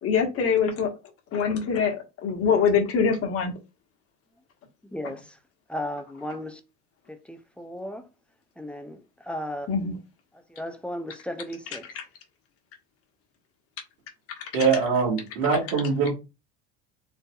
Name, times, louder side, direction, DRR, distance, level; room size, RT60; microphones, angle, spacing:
voice 1, 0.0-0.9 1.3-2.0 2.2-3.5 9.7-9.9, left 6 dB, 45° left, 1.3 m, -23 dB
voice 2, 4.8-5.4 5.7-6.6 7.1-8.1 8.6-9.7 10.5-11.9, left 1 dB, 5° left, 0.4 m, -35 dB
voice 3, 14.5-16.1, right 5 dB, 90° right, 1.9 m, -23 dB
4.5 x 3.3 x 2.3 m
cardioid pair, 140°, 32 cm